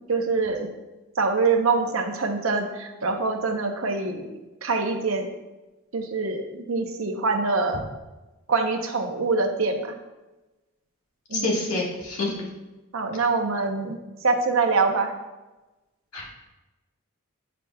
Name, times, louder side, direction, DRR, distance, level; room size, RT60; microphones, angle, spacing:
voice 1, 0.1-0.7 1.2-5.3 5.9-7.8 8.5-9.9 11.3-11.5 12.9-15.1, right 4 dB, 70° right, 5 dB, 0.7 m, -25 dB
voice 2, 11.3-12.3 16.1-16.2, left 2 dB, 90° left, -4 dB, 1.7 m, -27 dB
8.8 x 5.0 x 2.3 m, 1.1 s
head